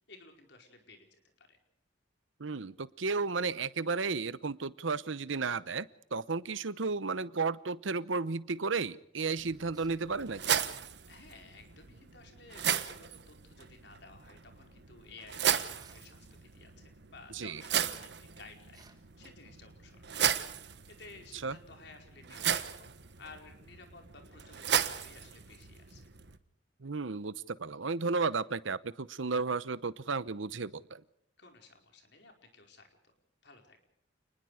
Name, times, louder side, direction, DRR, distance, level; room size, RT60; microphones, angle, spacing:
voice 1, 0.1-1.6 11.1-20.4 20.9-22.9 23.2-26.1 31.4-33.1 33.4-33.9, left 3 dB, 60° left, 4 dB, 4.8 m, -55 dB
voice 2, 2.4-10.6 17.3-17.6 21.4-21.6 26.8-31.0, right 4 dB, 80° right, 17 dB, 0.9 m, -33 dB
sound 1, 9.4-26.4, right 8 dB, 60° right, 1.3 m, -36 dB
sound 2, 9.7-10.0 12.7-13.1 15.8-16.1 18.7-19.1, right 4 dB, 20° right, 1.9 m, -59 dB
29.0 x 20.5 x 5.0 m, 0.72 s
head